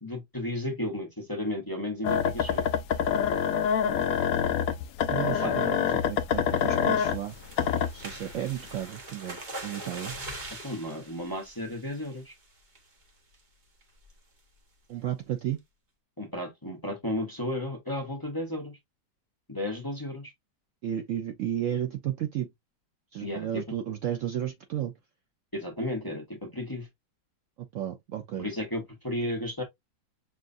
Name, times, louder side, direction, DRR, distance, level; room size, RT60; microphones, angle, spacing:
voice 1, 0.0-2.7 5.4-5.5 10.6-12.3 16.2-18.8 19.5-20.3 23.2-23.6 25.5-26.9 28.4-29.6, left 1 dB, 15° left, 0.8 m, -33 dB
sound 1, 2.0-8.3 8.8-8.9, left 8 dB, 75° left, 0.8 m, -26 dB
voice 2, 5.1-7.4 7.9-10.1 14.9-15.6 20.8-22.5 23.1-24.9 27.6-28.5, right 11 dB, 90° right, 0.6 m, -33 dB
sound 2, 6.6-12.3 12.8-13.0 13.3-13.4 13.8-14.1, right 2 dB, 30° right, 1.0 m, -43 dB
6.1 x 2.4 x 2.5 m
omnidirectional pair, 2.0 m